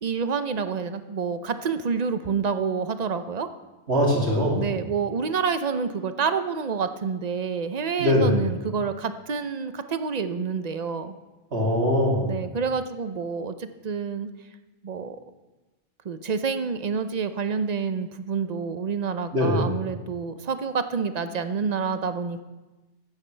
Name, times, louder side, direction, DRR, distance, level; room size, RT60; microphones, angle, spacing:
voice 1, 0.0-3.5 4.5-11.2 12.3-14.3 14.8-15.2 16.0-22.4, right 5 dB, 45° right, 10 dB, 0.6 m, -28 dB
voice 2, 3.9-4.6 8.0-8.4 11.5-12.4 19.3-19.7, left 1 dB, 65° right, -3 dB, 3.0 m, -22 dB
15.5 x 11.5 x 3.3 m, 1.1 s
omnidirectional pair, 1.2 m